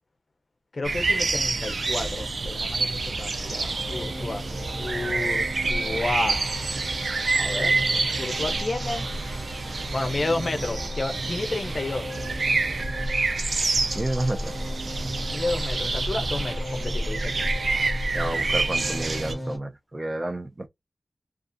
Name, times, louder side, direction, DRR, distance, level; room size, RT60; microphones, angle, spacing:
voice 1, 0.7-4.4 4.8-6.4 7.3-7.8 8.2-9.1 9.9-12.0 15.3-17.4, left 2 dB, 55° left, 0.5 m, -31 dB
sound 1, 0.8-19.3, right 3 dB, 75° right, 0.4 m, -27 dB
sound 2, 3.1-19.6, equal, 5° left, 1.3 m, -37 dB
voice 2, 13.9-14.5 18.1-20.7, right 1 dB, 30° right, 0.6 m, -30 dB
2.4 x 2.4 x 2.5 m
wide cardioid pair, 75°, 0 cm